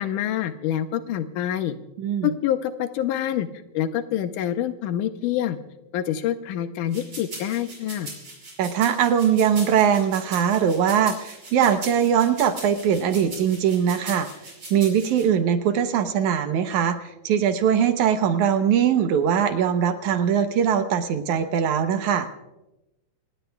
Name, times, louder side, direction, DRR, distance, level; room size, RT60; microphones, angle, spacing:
voice 1, 0.0-1.8 2.2-3.5 3.7-5.6 5.9-8.1, left 11 dB, 80° left, 9 dB, 2.3 m, -26 dB
voice 2, 2.0-2.3 8.6-14.3 14.7-17.0 17.2-22.3, right 8 dB, 70° right, 8 dB, 2.2 m, -21 dB
sound 1, 6.9-15.2, right 2 dB, 40° right, 6.7 m, -39 dB
27.5 x 18.5 x 2.3 m, 0.97 s
omnidirectional pair, 3.7 m